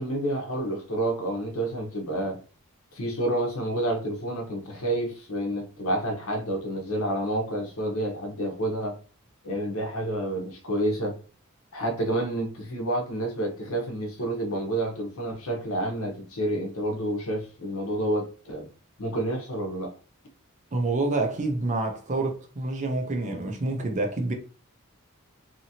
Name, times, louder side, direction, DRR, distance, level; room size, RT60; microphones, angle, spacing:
voice 1, 0.0-2.4 2.9-9.0 9.4-11.1 11.7-18.7 19.0-19.9, right 1 dB, 70° left, 0.8 m, -29 dB
voice 2, 20.7-24.3, right 2 dB, 35° right, 0.5 m, -27 dB
2.8 x 2.6 x 2.7 m
head